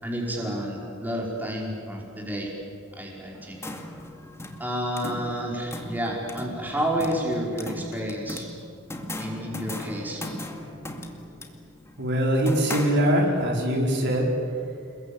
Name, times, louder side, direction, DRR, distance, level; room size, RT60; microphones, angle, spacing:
voice 1, 0.0-2.5 2.9-3.6 4.6-8.5 9.2-10.2, equal, 10° right, -2 dB, 5.0 m, -30 dB
sound 1, 3.3-13.5, left 1 dB, 15° left, 2.2 m, -38 dB
voice 2, 12.0-14.3, equal, 55° right, -1 dB, 4.9 m, -22 dB
29.0 x 21.5 x 8.8 m, 2.3 s
head